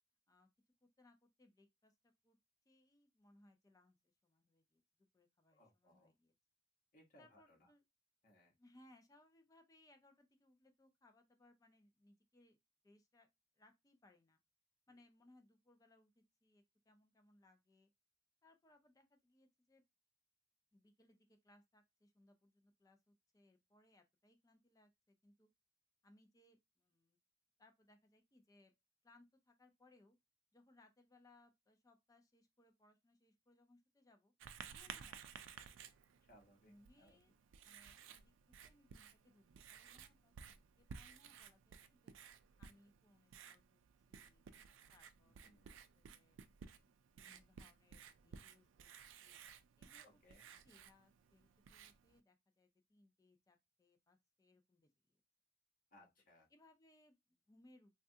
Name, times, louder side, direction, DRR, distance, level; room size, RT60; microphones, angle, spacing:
voice 1, 0.8-2.4 2.7-6.3 7.2-7.8 8.6-12.6 12.8-13.3 13.6-14.4 14.9-17.9 18.4-19.8 20.7-25.5 26.0-27.2 27.6-28.7 29.0-30.2 30.5-34.3 34.7-35.2 36.6-37.3 37.6-38.3 38.6-39.4 39.7-42.1 42.6-43.8 44.1-44.4 44.9-48.9 49.2-49.4 49.8-50.1 50.4-55.1 56.5-58.0, left 1 dB, 20° left, 0.4 m, -70 dB
voice 2, 5.5-6.1 6.9-7.7 8.2-8.5 36.3-36.7 37.0-37.2 45.4-45.8 50.0-50.4 55.9-56.5, left 1 dB, 45° left, 1.1 m, -67 dB
Writing, 34.4-52.2, right 7 dB, 75° right, 0.3 m, -57 dB
3.2 x 2.3 x 2.7 m
head